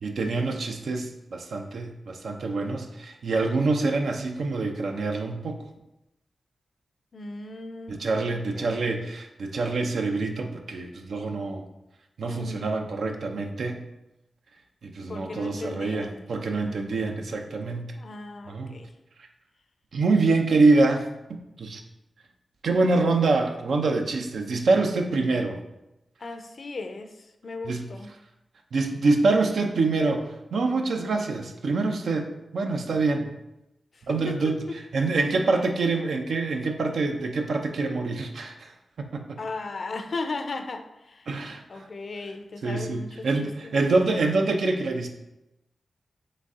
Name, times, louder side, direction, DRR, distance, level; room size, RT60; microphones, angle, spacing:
voice 1, 0.0-5.6 7.9-11.6 12.2-13.8 14.8-17.9 18.5-18.7 19.9-21.8 22.6-25.6 27.6-27.9 28.7-30.2 30.5-32.3 32.5-33.3 34.1-34.6 34.9-38.5 39.0-39.4 41.3-41.9 42.6-45.1, right 3 dB, 80° right, 4 dB, 0.5 m, -25 dB
voice 2, 7.1-8.9 12.3-12.7 15.1-16.3 16.5-17.1 18.0-18.9 26.2-27.1 27.4-28.1 34.1-34.8 39.4-41.3 41.7-44.1, left 3 dB, 60° left, 7 dB, 0.4 m, -37 dB
4.0 x 3.2 x 3.6 m, 0.91 s
cardioid pair, 65°, 0 cm